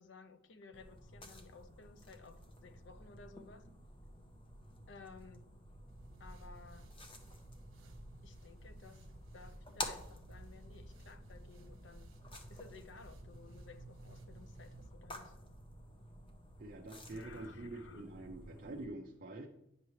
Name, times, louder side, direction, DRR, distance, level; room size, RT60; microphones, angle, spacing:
voice 1, 0.0-3.7 4.9-5.4 6.2-6.9 8.2-9.0 9.3-12.1 12.5-15.3 17.1-18.1, left 4 dB, 60° left, 11 dB, 0.5 m, -56 dB
sound 1, 0.7-18.9, left 1 dB, 25° left, 0.8 m, -51 dB
sound 2, 5.9-14.9, right 2 dB, 65° right, 1.3 m, -56 dB
voice 2, 16.6-19.5, right 2 dB, 45° right, 1 dB, 0.6 m, -46 dB
9.3 x 5.7 x 3.2 m, 0.80 s
head